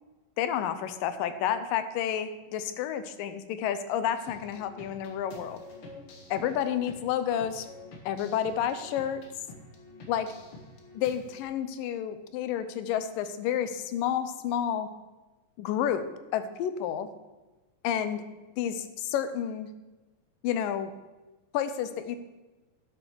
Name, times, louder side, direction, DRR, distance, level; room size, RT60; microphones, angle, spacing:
voice 1, 0.4-5.6 6.3-7.7 8.1-9.2 10.1-10.3 10.9-14.9 15.6-16.1 16.3-17.1 17.8-18.2 18.6-19.7 20.4-20.9 21.5-22.2, left 9 dB, 85° left, 11 dB, 2.4 m, -30 dB
sound 1, 4.2-11.4, left 2 dB, 50° left, 1.9 m, -49 dB
10.5 x 7.7 x 6.1 m, 1.1 s
omnidirectional pair, 4.0 m